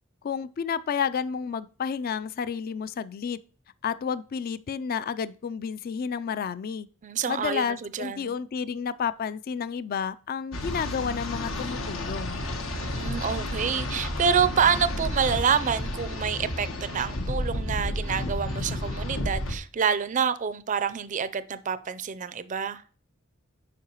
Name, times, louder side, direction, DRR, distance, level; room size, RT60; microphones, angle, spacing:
voice 1, 0.2-3.4 3.8-6.9 7.3-12.4, left 6 dB, 45° left, 0.4 m, -31 dB
voice 2, 7.0-8.4 12.7-22.8, right 7 dB, 40° right, 0.4 m, -27 dB
sound 1, 10.5-19.6, left 1 dB, 85° left, 1.3 m, -31 dB
8.5 x 5.5 x 3.0 m
head